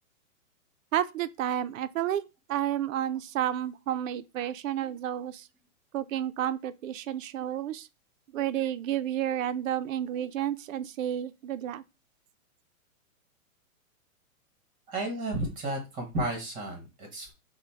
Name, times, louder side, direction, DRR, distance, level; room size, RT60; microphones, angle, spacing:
voice 1, 0.9-5.5 5.9-7.9 8.3-11.8, right 11 dB, 65° right, 0.5 m, -31 dB
voice 2, 14.9-17.3, right 1 dB, 20° right, 1.2 m, -33 dB
3.8 x 2.2 x 4.4 m
hypercardioid pair, 155°, 43 cm